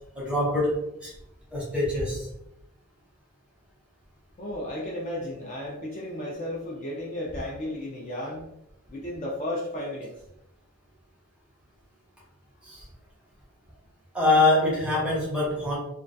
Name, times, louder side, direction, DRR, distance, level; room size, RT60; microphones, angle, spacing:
voice 1, 0.2-1.1 1.5-2.3 12.6-12.8 14.1-15.8, left 2 dB, 5° right, -5 dB, 0.7 m, -24 dB
voice 2, 4.4-8.5 8.9-10.1, left 1 dB, 35° left, -3 dB, 0.3 m, -34 dB
2.3 x 2.2 x 2.5 m, 0.83 s
head